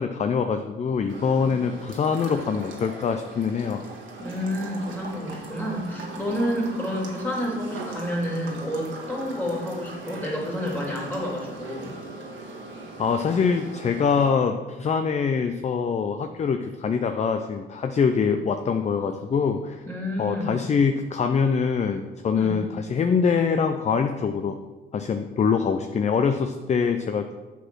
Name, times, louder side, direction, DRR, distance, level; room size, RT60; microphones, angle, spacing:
voice 1, 0.0-3.8 13.0-19.8 20.2-24.6 24.9-27.3, left 6 dB, 35° left, 7 dB, 0.5 m, -24 dB
sound 1, 1.1-14.3, right 3 dB, 80° right, 1.6 m, -40 dB
voice 2, 4.2-12.0 19.8-20.5 22.3-22.6, equal, 10° left, -3 dB, 2.8 m, -29 dB
8.2 x 4.2 x 6.1 m, 1.2 s
cardioid pair, 90°, 20 cm